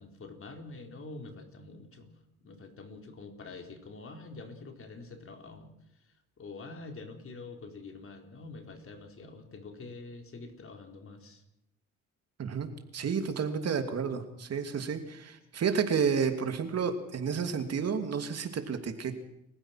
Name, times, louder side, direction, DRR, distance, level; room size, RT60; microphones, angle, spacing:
voice 1, 0.0-2.1 2.4-5.7 6.4-11.4, left 3 dB, 45° left, 4 dB, 4.3 m, -46 dB
voice 2, 12.4-19.2, right 6 dB, 55° right, 7 dB, 2.8 m, -31 dB
29.5 x 15.5 x 6.0 m, 0.83 s
cardioid pair, 90°, 30 cm